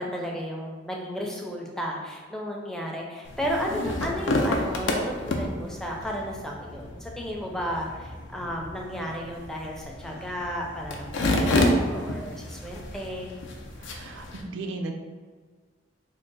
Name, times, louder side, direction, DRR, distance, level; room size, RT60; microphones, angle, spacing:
voice 1, 0.0-13.4, equal, 5° left, -1 dB, 0.4 m, -33 dB
sound 1, 3.3-14.4, left 1 dB, 85° left, 0.5 m, -30 dB
voice 2, 13.8-14.9, right 2 dB, 85° right, 4 dB, 0.4 m, -35 dB
3.6 x 2.0 x 3.8 m, 1.5 s
head